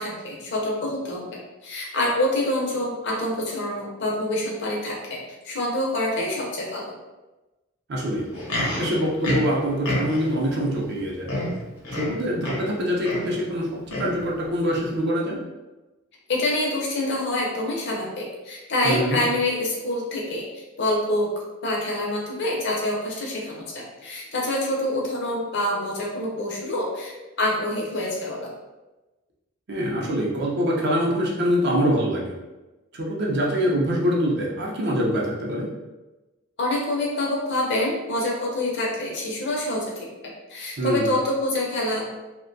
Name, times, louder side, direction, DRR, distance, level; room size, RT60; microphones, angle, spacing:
voice 1, 0.0-5.2 5.4-6.8 16.3-21.3 21.6-28.5 36.6-42.0, left 1 dB, 50° left, -2 dB, 0.5 m, -26 dB
voice 2, 7.9-8.3 8.6-11.3 11.9-15.4 18.8-19.2 29.7-32.3 32.9-35.7 40.8-41.1, equal, 50° right, -3 dB, 0.5 m, -24 dB
Livestock farm animals working animals, 8.2-10.4 11.0-11.1 11.3-12.7 13.0-13.4 13.9-14.2 14.9-15.0, left 1 dB, 75° left, 0.8 m, -28 dB
2.5 x 2.1 x 2.5 m, 1.1 s
head